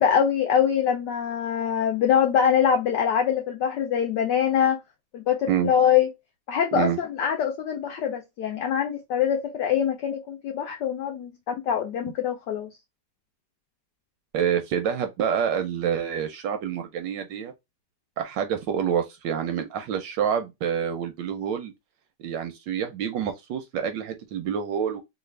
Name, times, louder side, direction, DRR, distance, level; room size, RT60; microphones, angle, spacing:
voice 1, 0.0-4.8 5.1-6.1 6.5-12.7, left 8 dB, 75° left, 1.0 m, -24 dB
voice 2, 14.3-17.5 18.2-21.7 22.2-25.0, right 8 dB, 75° right, 1.1 m, -27 dB
3.3 x 2.3 x 3.1 m
omnidirectional pair, 2.2 m